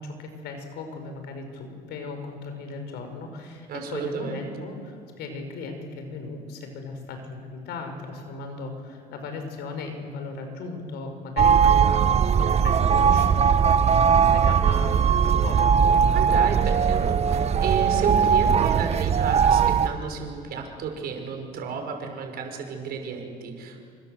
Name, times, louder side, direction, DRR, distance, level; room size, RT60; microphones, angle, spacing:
voice 1, 0.0-13.8 14.2-15.8, left 3 dB, 80° left, 6 dB, 5.4 m, -37 dB
voice 2, 3.7-4.5 16.1-23.8, right 5 dB, 65° right, 3 dB, 5.6 m, -32 dB
sound 1, 11.4-19.9, right 7 dB, 40° right, 1.0 m, -19 dB
28.0 x 25.5 x 7.9 m, 2.2 s
cardioid pair, 110°, 17 cm